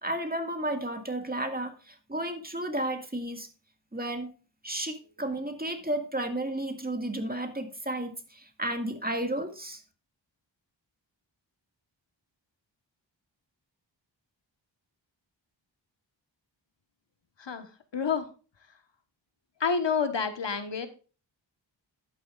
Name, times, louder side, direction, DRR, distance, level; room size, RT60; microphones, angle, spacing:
voice 1, 0.0-3.5 3.9-4.3 4.6-9.8, right 1 dB, 20° right, 5 dB, 2.0 m, -33 dB
voice 2, 17.4-18.3 19.6-20.9, left 5 dB, 70° left, 9 dB, 1.3 m, -29 dB
11.0 x 9.3 x 2.5 m, 0.35 s
wide cardioid pair, 65°, 46 cm